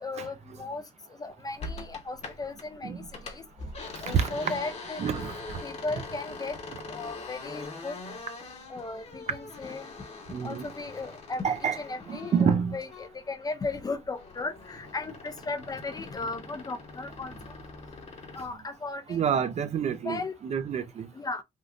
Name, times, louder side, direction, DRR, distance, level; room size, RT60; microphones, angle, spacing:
voice 1, 0.0-0.8 1.2-3.4 4.0-5.0 5.6-6.6 6.9-8.0 8.7-9.9 10.4-17.3 18.4-19.3 20.0-20.3 21.2-21.4, left 3 dB, 20° left, 0.5 m, -36 dB
sound 1, 1.6-2.7 3.0-13.3 13.7-18.5, left 3 dB, 40° left, 1.0 m, -43 dB
voice 2, 4.1-4.5 5.0-5.6 10.3-10.7 11.4-11.8 12.1-12.8 19.1-21.1, right 7 dB, 40° right, 0.5 m, -28 dB
3.5 x 2.5 x 2.5 m
cardioid pair, 110°, 17 cm